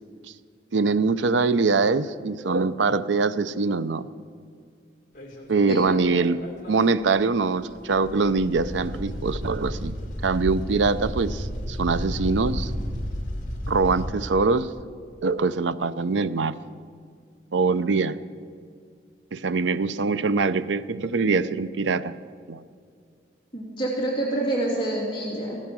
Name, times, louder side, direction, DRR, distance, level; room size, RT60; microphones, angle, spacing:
voice 1, 0.7-4.1 5.5-6.4 6.7-9.9 10.2-12.7 13.7-14.7 15.2-16.5 17.5-18.2 19.3-22.2 22.5-22.6, right 4 dB, 85° right, 14 dB, 0.5 m, -23 dB
sound 1, 5.1-6.8 7.1-7.2 7.6-14.1, equal, 45° left, 2.3 m, -32 dB
voice 2, 23.5-25.6, right 1 dB, 25° left, -4 dB, 2.7 m, -27 dB
16.0 x 13.0 x 6.1 m, 2.2 s
head